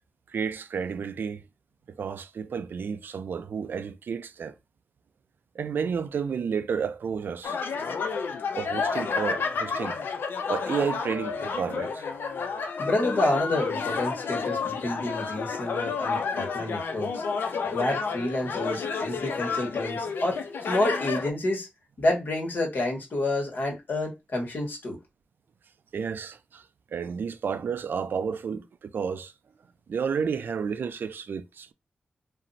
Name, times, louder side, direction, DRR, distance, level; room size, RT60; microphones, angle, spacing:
voice 1, 0.3-1.5 1.9-4.5 5.5-7.6 8.6-10.0 10.5-12.1 25.9-26.6 26.9-29.3 29.9-31.7, right 6 dB, 75° right, 0.3 m, -31 dB
sound 1, 7.4-21.3, left 5 dB, 85° left, 0.4 m, -30 dB
voice 2, 12.8-17.2 17.7-20.4 20.7-21.7 22.0-25.0, left 1 dB, 65° left, 1.1 m, -29 dB
2.5 x 2.0 x 3.8 m
wide cardioid pair, 115°, 4 cm